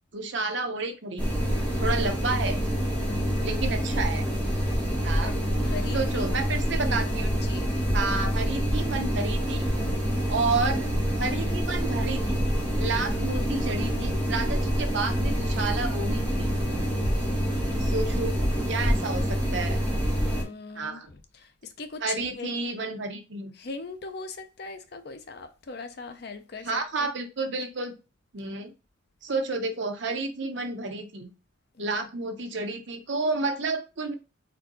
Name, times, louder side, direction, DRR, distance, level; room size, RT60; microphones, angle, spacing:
voice 1, 0.1-1.4 1.8-2.6 3.4-4.3 5.0-5.3 5.9-7.3 7.9-9.7 10.3-12.4 12.8-16.5 17.8-18.4 18.7-19.8 20.7-21.1 22.0-23.5 26.6-28.0 28.3-28.7 29.2-31.3 31.8-34.1, right 3 dB, 65° right, 0.8 m, -30 dB
sound 1, 1.2-20.4, equal, 5° left, 1.3 m, -26 dB
voice 2, 3.0-3.5 5.2-6.3 7.4-7.9 17.7-18.1 20.2-21.0 21.4-21.5 21.8-22.5 23.6-26.7 31.8-31.9, left 4 dB, 50° left, 0.5 m, -40 dB
4.5 x 2.6 x 3.8 m
head